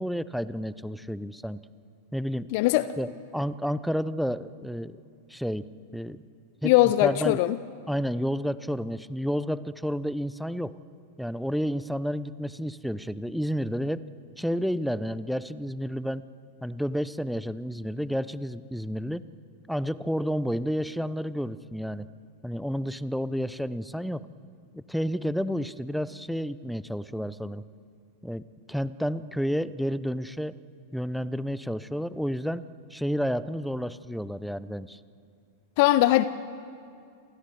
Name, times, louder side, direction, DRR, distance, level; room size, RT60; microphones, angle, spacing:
voice 1, 0.0-1.6 2.1-2.5 3.0-5.0 5.3-5.7 5.9-6.2 6.6-6.7 7.0-7.4 7.9-10.7 11.2-14.0 14.4-16.2 16.6-19.2 19.7-22.1 22.4-24.3 24.7-27.6 28.2-30.6 30.9-32.6 32.9-35.0, equal, ahead, 0.7 m, -30 dB
voice 2, 2.5-2.9 6.6-7.6 35.8-36.2, left 16 dB, 45° left, 0.6 m, -20 dB
29.5 x 23.0 x 7.0 m
figure-of-eight pair, 90°, 0 cm